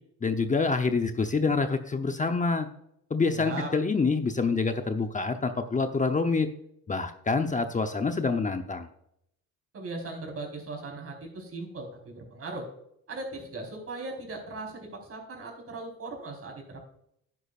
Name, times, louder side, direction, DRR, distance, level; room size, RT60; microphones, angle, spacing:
voice 1, 0.2-2.7 3.1-6.5 6.9-8.9, left 4 dB, 25° left, 7 dB, 0.8 m, -26 dB
voice 2, 3.3-3.7 9.7-12.7 13.1-16.8, right 2 dB, 50° right, 0 dB, 4.4 m, -38 dB
11.0 x 10.5 x 2.5 m, 0.75 s
cardioid pair, 90°, 30 cm